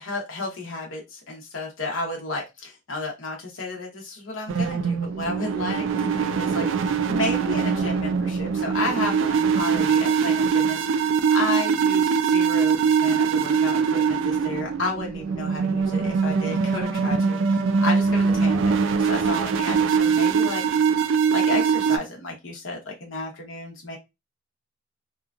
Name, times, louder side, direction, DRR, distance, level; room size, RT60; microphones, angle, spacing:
voice 1, 0.0-20.6 21.0-24.0, left 2 dB, 75° left, 0 dB, 0.8 m, -32 dB
sound 1, 4.5-22.0, right 6 dB, 70° right, 0.3 m, -22 dB
2.9 x 2.3 x 2.4 m, 0.22 s
head